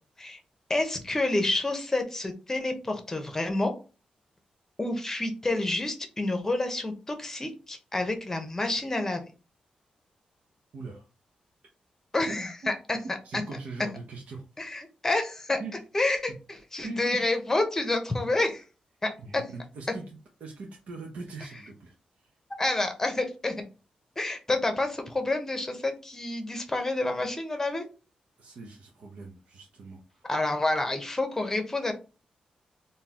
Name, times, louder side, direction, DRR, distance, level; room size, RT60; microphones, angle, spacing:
voice 1, 0.7-3.7 4.8-9.3 12.1-13.0 13.3-13.4 14.6-15.6 15.9-18.6 19.0-19.4 22.6-23.6 24.2-27.9 30.3-31.9, left 2 dB, 20° left, 5 dB, 0.9 m, -29 dB
voice 2, 10.7-11.1 13.2-14.7 15.6-15.7 16.8-17.2 19.2-20.1 20.4-22.3 28.4-30.3, right 3 dB, 70° right, -1 dB, 0.8 m, -41 dB
3.8 x 2.7 x 2.9 m, 0.32 s
wide cardioid pair, 115°, 2 cm